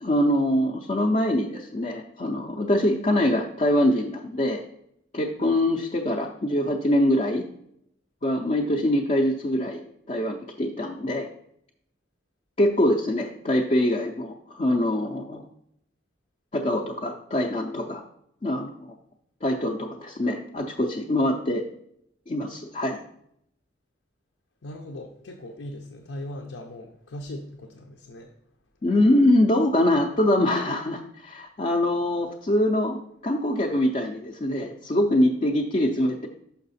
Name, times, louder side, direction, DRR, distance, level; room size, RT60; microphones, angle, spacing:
voice 1, 0.0-4.6 5.1-7.4 8.2-9.8 10.1-11.3 12.6-15.4 16.5-18.0 18.4-18.9 19.4-21.6 22.3-23.0 28.8-36.3, left 1 dB, 35° left, 0 dB, 0.5 m, -24 dB
voice 2, 24.6-28.3, left 1 dB, 90° left, 3 dB, 0.7 m, -39 dB
5.8 x 5.6 x 4.1 m, 0.73 s
head